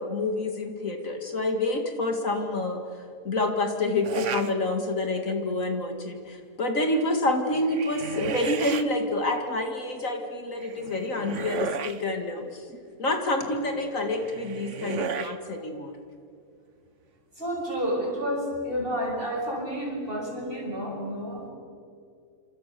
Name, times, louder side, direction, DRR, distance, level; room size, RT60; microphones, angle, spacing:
voice 1, 0.0-2.8 3.2-12.6 13.0-15.9, left 2 dB, 60° left, 4 dB, 2.5 m, -28 dB
sound 1, 4.0-4.5 5.0-5.5 7.5-8.8 10.6-12.0 14.0-15.4, right 6 dB, 55° right, 1.3 m, -34 dB
voice 2, 17.4-21.5, equal, 35° right, 0 dB, 6.4 m, -30 dB
28.0 x 26.5 x 6.8 m, 2.3 s
omnidirectional pair, 1.6 m